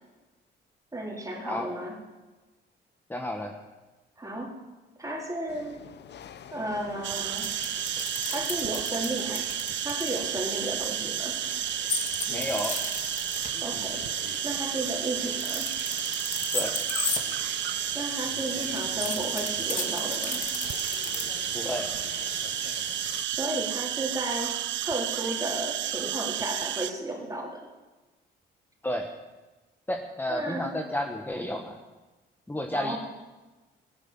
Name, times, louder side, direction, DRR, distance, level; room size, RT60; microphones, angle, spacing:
voice 1, 0.9-1.9 4.2-4.5 5.0-5.8 6.5-7.5 8.3-9.5 9.8-11.4 13.6-14.0 14.4-15.7 17.9-20.5 23.3-24.5 24.8-27.7 30.3-30.7 32.7-33.0, right 1 dB, 15° right, -1 dB, 4.1 m, -33 dB
voice 2, 3.1-3.6 12.3-12.8 16.5-16.8 21.5-21.9 28.8-29.1 29.9-31.8 32.5-32.9, left 1 dB, 10° left, 3 dB, 1.4 m, -31 dB
sound 1, 5.5-23.3, left 9 dB, 60° left, 0.9 m, -42 dB
sound 2, 7.0-26.9, right 13 dB, 70° right, 0.5 m, -32 dB
sound 3, 7.2-10.1 11.9-13.5 15.2-17.2 18.1-21.2, left 4 dB, 40° left, 2.4 m, -33 dB
16.0 x 10.5 x 7.6 m, 1.2 s
cardioid pair, 90°, 20 cm